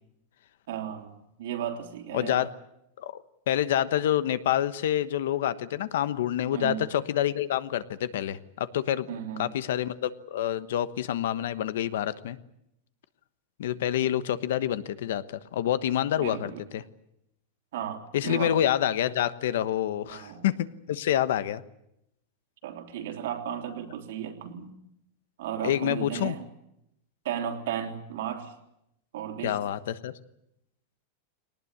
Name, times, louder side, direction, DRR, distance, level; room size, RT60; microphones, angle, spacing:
voice 1, 0.7-2.5 6.5-6.9 9.1-9.5 16.2-16.6 17.7-18.5 20.1-20.4 22.6-24.7 25.4-26.4 27.2-28.5 29.1-29.6, right 9 dB, 65° right, 4 dB, 3.2 m, -35 dB
voice 2, 2.1-2.5 3.0-9.1 9.4-12.4 13.6-15.2 15.5-16.8 18.1-20.5 20.9-21.6 25.6-26.4 29.4-30.1, left 11 dB, 70° left, 14 dB, 1.1 m, -27 dB
21.5 x 19.0 x 9.8 m, 0.82 s
supercardioid pair, 170°, 0 cm